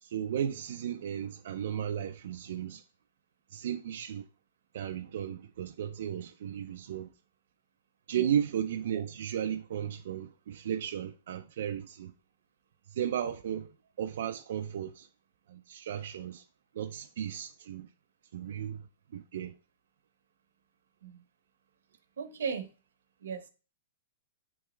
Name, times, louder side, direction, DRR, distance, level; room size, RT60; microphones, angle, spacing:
voice 1, 0.0-2.8 3.5-4.2 4.7-7.1 8.1-12.1 12.9-13.7 14.0-15.1 15.5-16.4 16.7-17.9 18.3-18.9 19.1-19.5, right 9 dB, 55° right, 0.4 m, -34 dB
voice 2, 22.2-22.7 23.2-23.5, right 6 dB, 85° right, 1.0 m, -36 dB
8.9 x 3.5 x 3.1 m
hypercardioid pair, 175°, 0 cm